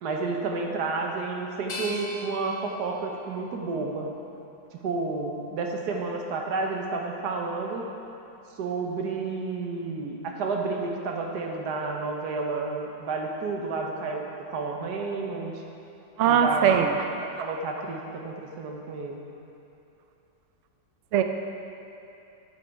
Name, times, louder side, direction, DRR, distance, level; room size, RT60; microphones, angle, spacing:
voice 1, 0.0-4.1 4.7-7.8 8.6-15.5 16.2-17.0 17.2-19.2, right 3 dB, 65° right, 1 dB, 1.4 m, -31 dB
sound 1, 1.7-4.6 5.2-6.0, left 2 dB, 45° left, 1.0 m, -42 dB
voice 2, 16.2-17.0 21.1-21.2, right 8 dB, 85° right, 6 dB, 0.6 m, -21 dB
8.5 x 7.7 x 4.7 m, 2.8 s
omnidirectional pair, 2.0 m